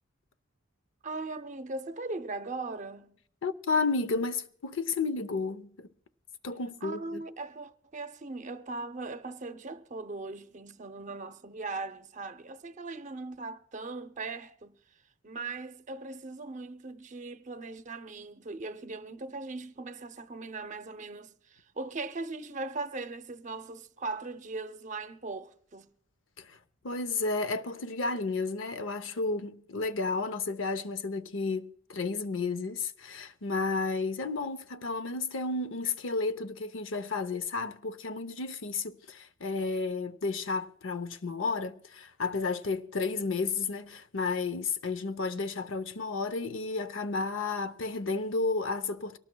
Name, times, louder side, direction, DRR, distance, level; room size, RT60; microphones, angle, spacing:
voice 1, 1.0-3.2 6.8-14.7 15.2-25.9, right 3 dB, 40° right, 0.7 m, -39 dB
voice 2, 3.4-5.9 6.4-7.2 26.4-26.6 26.8-49.2, left 3 dB, 70° left, 0.7 m, -32 dB
23.5 x 18.5 x 2.3 m
head